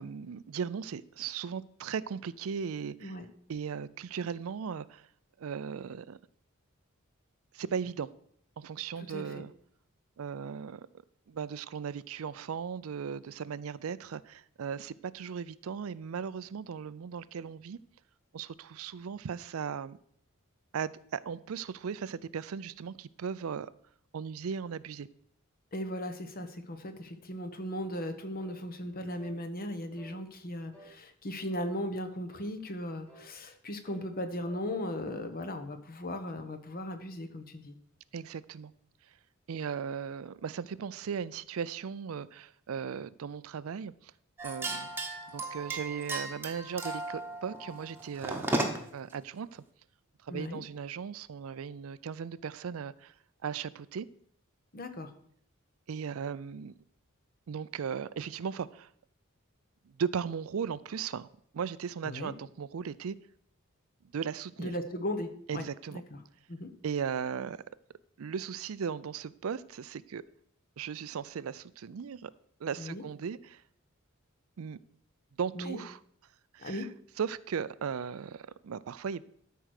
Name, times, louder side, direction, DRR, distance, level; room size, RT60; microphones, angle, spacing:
voice 1, 0.0-3.2 3.5-5.1 5.4-6.2 7.5-8.1 8.6-9.5 10.2-10.9 11.3-17.8 18.3-20.0 20.7-23.7 24.1-25.1 38.1-38.7 39.5-44.1 44.4-44.9 45.3-48.6 48.9-49.6 50.2-53.1 53.4-54.1 55.9-56.7 57.5-58.9 59.9-61.3 61.5-63.2 64.1-64.7 65.5-66.0 66.8-67.6 68.2-70.2 70.8-72.3 72.6-73.6 74.6-74.8 75.4-76.0 76.5-76.9 77.2-79.2, right 6 dB, 75° right, 17 dB, 0.4 m, -37 dB
voice 2, 9.1-9.4 25.7-37.8 50.3-50.6 54.7-55.1 62.0-62.3 64.6-65.7 65.9-66.0 66.5-66.7 72.8-73.0 75.5-75.8 76.6-76.9, left 1 dB, 45° left, 8 dB, 1.1 m, -37 dB
sound 1, 28.4-28.7 29.2-29.4 30.0-30.2 30.7-31.0 31.5-31.8 32.3-32.5 33.1-33.3 33.8-35.6, right 1 dB, 5° left, 2.1 m, -54 dB
sound 2, 44.4-49.0, right 2 dB, 10° right, 1.2 m, -35 dB
13.0 x 4.7 x 6.5 m, 0.64 s
head